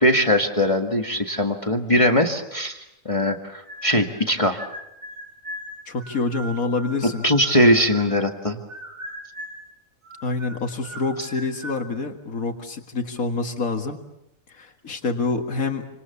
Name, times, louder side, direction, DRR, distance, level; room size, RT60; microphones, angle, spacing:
voice 1, 0.0-4.6 7.2-8.6, equal, 25° left, 4 dB, 1.8 m, -20 dB
sound 1, 3.7-4.3 4.6-8.4 8.7-9.7 10.0-11.8, equal, 45° right, 6.8 m, -39 dB
voice 2, 5.9-7.2 10.2-14.0 14.5-15.9, left 3 dB, 85° left, 5 dB, 2.3 m, -27 dB
29.0 x 26.5 x 7.1 m, 0.87 s
omnidirectional pair, 1.4 m